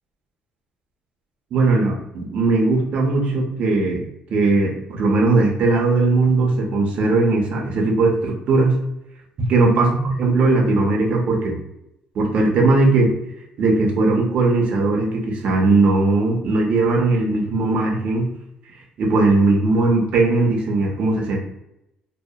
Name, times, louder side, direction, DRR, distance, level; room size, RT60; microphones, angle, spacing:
voice 1, 1.5-4.0 4.3-8.8 9.5-11.6 12.1-13.2 13.6-18.3 19.0-21.4, right 3 dB, 50° right, -1 dB, 0.6 m, -18 dB
2.7 x 2.0 x 2.2 m, 0.83 s
cardioid pair, 135°, 3 cm